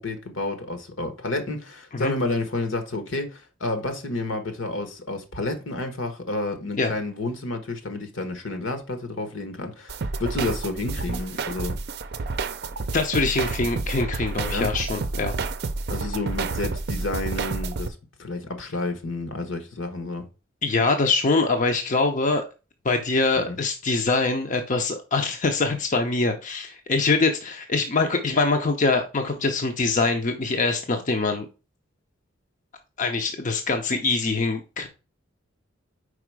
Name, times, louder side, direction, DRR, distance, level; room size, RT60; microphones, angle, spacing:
voice 1, 0.0-11.8 14.5-14.7 15.9-20.2 23.4-23.6, left 2 dB, 75° left, 1.2 m, -30 dB
sound 1, 9.9-17.9, right 3 dB, 55° right, 0.5 m, -29 dB
voice 2, 12.9-15.3 20.6-22.4 22.8-31.5 33.0-34.9, left 3 dB, 40° left, 0.6 m, -24 dB
4.9 x 4.6 x 4.6 m
head